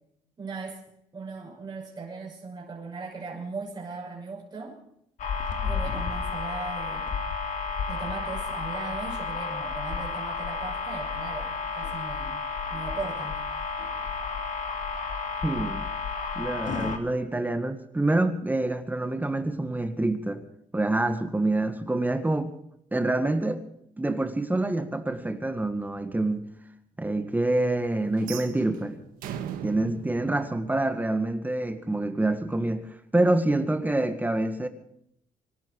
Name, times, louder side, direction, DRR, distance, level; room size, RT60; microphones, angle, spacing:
voice 1, 0.4-0.8 1.1-4.8 5.6-7.2 7.9-12.4 12.7-13.4, right 4 dB, 30° right, 6.3 m, -38 dB
sound 1, 5.2-17.0, left 4 dB, 60° left, 2.7 m, -32 dB
voice 2, 15.4-15.9 16.4-20.4 20.7-22.5 22.9-23.6 24.0-26.5 27.0-29.0 29.6-32.8 33.1-34.7, right 2 dB, 10° right, 1.8 m, -26 dB
sound 2, 28.2-31.3, right 9 dB, 90° right, 1.7 m, -39 dB
25.5 x 12.0 x 4.8 m
cardioid pair, 95°, 14 cm